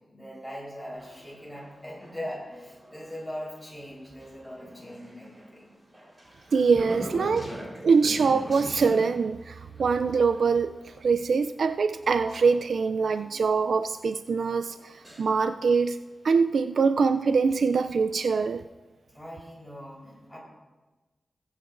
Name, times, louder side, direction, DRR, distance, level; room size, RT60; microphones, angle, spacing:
voice 1, 0.1-5.7 19.1-20.4, equal, 5° left, -5 dB, 3.9 m, -40 dB
sound 1, 0.9-15.6 16.8-17.9 18.3-18.4, equal, 20° right, 3.9 m, -44 dB
voice 2, 6.5-7.5 7.8-16.0 16.2-18.6, right 5 dB, 80° right, 9 dB, 0.3 m, -24 dB
20.5 x 8.8 x 2.5 m, 1.2 s
wide cardioid pair, 135°, 0 cm